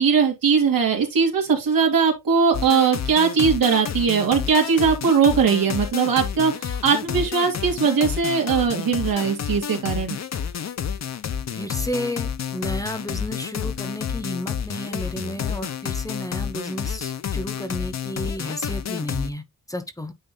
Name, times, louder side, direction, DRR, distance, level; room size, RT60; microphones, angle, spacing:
voice 1, 0.0-10.2, right 6 dB, 90° right, 2.6 m, -20 dB
sound 1, 2.5-19.3, left 8 dB, 50° left, 0.8 m, -30 dB
voice 2, 11.6-20.1, equal, 10° left, 1.0 m, -32 dB
9.2 x 3.2 x 3.9 m
wide cardioid pair, 110°, 34 cm